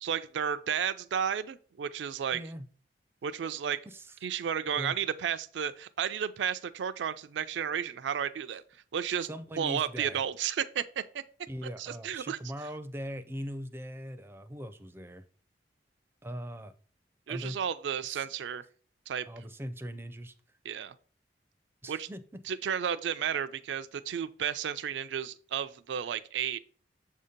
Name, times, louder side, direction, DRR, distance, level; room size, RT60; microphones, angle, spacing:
voice 1, 0.0-2.4 3.2-3.8 4.2-8.6 8.9-9.3 9.6-11.2 11.8-12.4 17.3-18.6 19.1-19.3 20.6-20.9 21.9-22.1 22.5-26.6, right 8 dB, 80° right, 0.4 m, -32 dB
voice 2, 2.3-2.7 3.9-4.1 4.7-4.9 9.3-10.2 11.5-15.2 16.2-16.7 17.3-17.6 18.1-18.3 19.3-20.3 21.8-22.2, equal, 15° right, 0.4 m, -40 dB
7.1 x 2.8 x 5.0 m
head